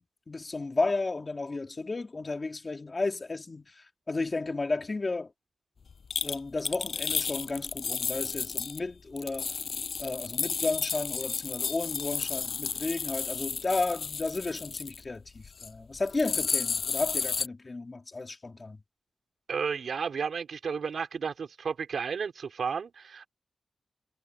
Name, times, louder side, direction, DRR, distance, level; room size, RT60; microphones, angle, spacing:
voice 1, 0.0-5.3 6.2-9.5 10.0-18.8, left 3 dB, 35° left, 3.3 m, -33 dB
sound 1, 6.1-8.8 9.2-15.0 15.4-15.7 16.0-17.5, left 6 dB, 70° left, 7.1 m, -32 dB
voice 2, 19.5-23.3, right 6 dB, 75° right, 4.8 m, -32 dB
wide cardioid pair, 100°, 0 cm